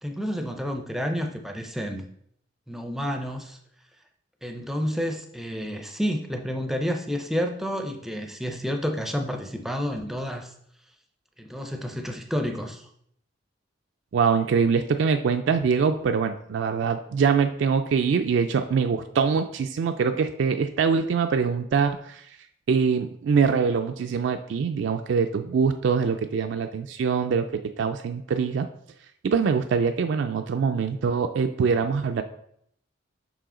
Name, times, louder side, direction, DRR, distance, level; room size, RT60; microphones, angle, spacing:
voice 1, 0.0-2.0 2.7-3.6 4.4-10.5 11.4-12.9, equal, ahead, 4 dB, 0.5 m, -30 dB
voice 2, 14.1-22.3 22.7-28.7 29.2-32.2, right 6 dB, 65° right, 7 dB, 0.3 m, -24 dB
5.4 x 4.9 x 3.7 m, 0.70 s
head